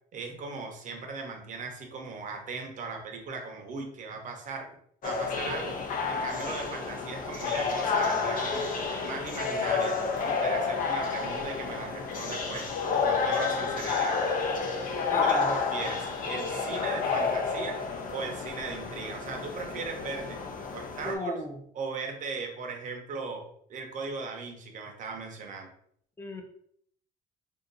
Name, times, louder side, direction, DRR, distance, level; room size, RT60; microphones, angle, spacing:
voice 1, 0.1-4.7 5.0-5.8 6.1-8.7 9.0-12.7 13.0-14.2 15.2-15.4 15.7-17.8 18.1-20.4 20.7-21.3 21.7-25.7, right 4 dB, 50° right, 3 dB, 0.9 m, -38 dB
sound 1, 5.0-21.1, left 5 dB, 50° left, 0.7 m, -30 dB
voice 2, 15.1-15.6 21.0-21.6 26.2-26.4, left 1 dB, 15° left, 3 dB, 0.7 m, -33 dB
2.7 x 2.4 x 3.9 m, 0.65 s
cardioid pair, 110°, 17 cm